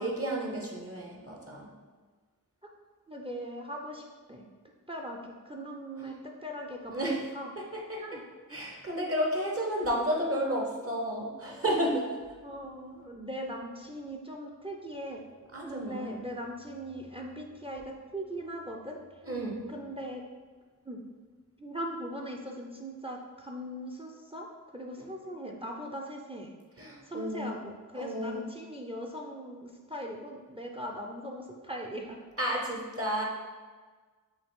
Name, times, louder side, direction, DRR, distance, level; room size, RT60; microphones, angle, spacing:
voice 1, 0.0-1.7 6.0-6.2 6.9-7.3 7.6-8.0 8.5-12.2 15.5-16.2 19.2-19.6 26.8-27.6 27.9-28.5 32.4-33.2, equal, 40° right, -1 dB, 0.8 m, -32 dB
voice 2, 3.1-4.4 4.9-7.5 8.0-8.2 12.4-15.2 15.7-19.0 19.7-20.2 20.8-21.0 21.6-26.5 27.1-32.2, equal, 15° right, 1 dB, 0.5 m, -40 dB
5.5 x 2.5 x 3.7 m, 1.4 s
wide cardioid pair, 40°, 35 cm